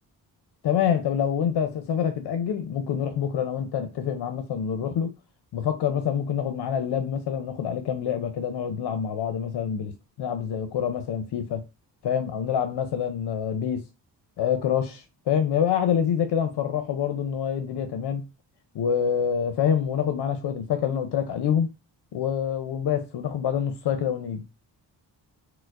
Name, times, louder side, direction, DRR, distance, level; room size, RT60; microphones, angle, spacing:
voice 1, 0.6-5.1 5.5-11.6 12.0-13.8 14.4-18.2 18.7-21.7 22.1-24.4, left 8 dB, 65° left, 0.6 m, -26 dB
4.3 x 2.1 x 2.4 m
cardioid pair, 75°, 43 cm